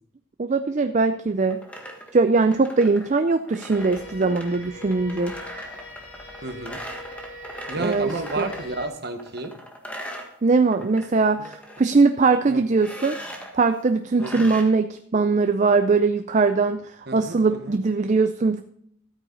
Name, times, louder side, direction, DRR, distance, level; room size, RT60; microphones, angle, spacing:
voice 1, 0.4-1.6 2.1-5.3 7.8-8.5 10.4-13.2 13.5-18.6, right 4 dB, 35° right, 8 dB, 0.4 m, -21 dB
sound 1, 1.4-8.7 9.2-11.1 11.3-11.8 12.8-13.5 14.2-14.6, equal, 5° left, 1.4 m, -39 dB
sound 2, 3.7-8.9, left 1 dB, 85° left, 3.8 m, -41 dB
voice 2, 6.4-6.8 7.7-9.5 12.5-12.6 14.2-14.5 17.1-17.8, right 2 dB, 50° right, 7 dB, 1.3 m, -31 dB
13.0 x 9.0 x 3.9 m, 0.68 s
head